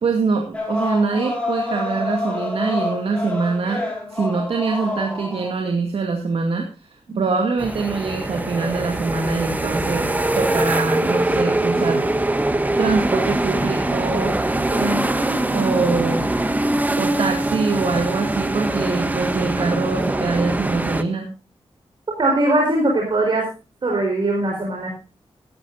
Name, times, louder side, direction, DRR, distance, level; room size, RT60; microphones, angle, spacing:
voice 1, 0.0-3.8 4.1-12.0 12.8-14.4 15.5-16.3 17.0-21.3, right 4 dB, 65° right, 2 dB, 2.3 m, -24 dB
sound 1, 0.5-5.5, left 2 dB, 10° left, 4.8 m, -27 dB
sound 2, 7.6-21.0, right 2 dB, 15° right, 1.1 m, -22 dB
voice 2, 14.7-15.1 22.2-23.5 23.8-24.9, right 2 dB, 45° right, -1 dB, 4.7 m, -20 dB
16.5 x 14.0 x 2.7 m, 0.30 s
wide cardioid pair, 165°, 10 cm